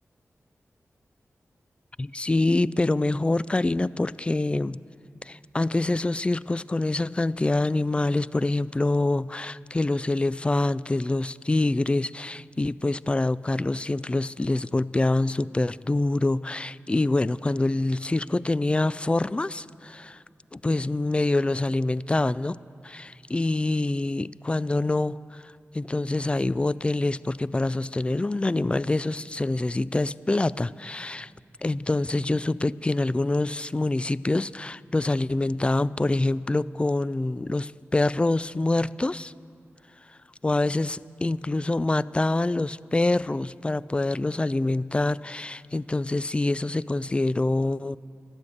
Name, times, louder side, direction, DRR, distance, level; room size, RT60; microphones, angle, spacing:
voice 1, 2.0-4.8 5.2-20.2 20.5-22.6 22.8-25.4 25.7-31.3 31.6-39.3 40.4-48.0, left 2 dB, 20° left, 19 dB, 0.3 m, -25 dB
13.0 x 12.0 x 8.4 m, 2.3 s
cardioid pair, 55°, 5 cm